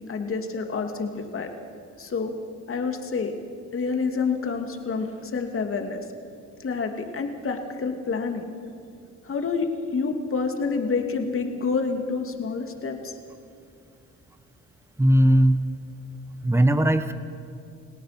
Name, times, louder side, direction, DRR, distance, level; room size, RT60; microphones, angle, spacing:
voice 1, 0.1-1.5 2.0-2.3 2.7-3.3 3.7-6.0 6.6-8.4 9.2-13.2, left 4 dB, 45° left, 5 dB, 2.6 m, -28 dB
voice 2, 15.0-15.6 16.4-17.1, right 1 dB, 10° right, 10 dB, 1.2 m, -18 dB
29.0 x 17.0 x 6.0 m, 2.5 s
cardioid pair, 90°, 30 cm